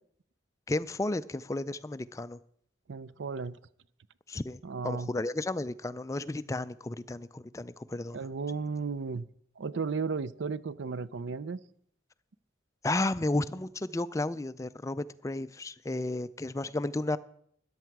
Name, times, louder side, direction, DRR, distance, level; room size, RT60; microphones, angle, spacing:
voice 1, 0.7-2.4 4.3-8.2 12.8-17.2, left 2 dB, 15° left, 14 dB, 0.4 m, -33 dB
voice 2, 2.9-3.6 4.6-5.2 8.1-9.2 9.6-11.6, right 5 dB, 80° right, 18 dB, 0.5 m, -34 dB
13.5 x 10.5 x 4.7 m, 0.66 s
head